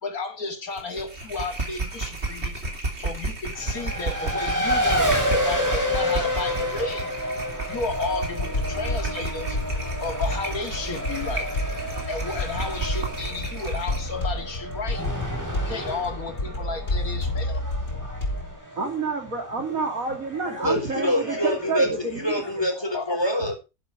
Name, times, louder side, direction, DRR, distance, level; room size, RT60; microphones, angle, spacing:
voice 1, 0.0-2.6 3.0-7.1 7.7-9.6 10.0-11.5 12.1-15.1 15.7-17.6 22.9-23.2, left 4 dB, 75° left, 2.6 m, -33 dB
sound 1, 0.7-14.1, right 2 dB, 45° right, 3.5 m, -33 dB
Race car auto racing, 3.5-22.7, equal, 10° right, 4.3 m, -30 dB
sound 2, 7.9-18.5, left 1 dB, 60° left, 4.0 m, -30 dB
voice 2, 18.8-22.2, right 4 dB, 70° right, 3.1 m, -28 dB
voice 3, 20.4-23.5, left 1 dB, 15° left, 4.4 m, -26 dB
11.5 x 10.5 x 4.6 m
omnidirectional pair, 1.5 m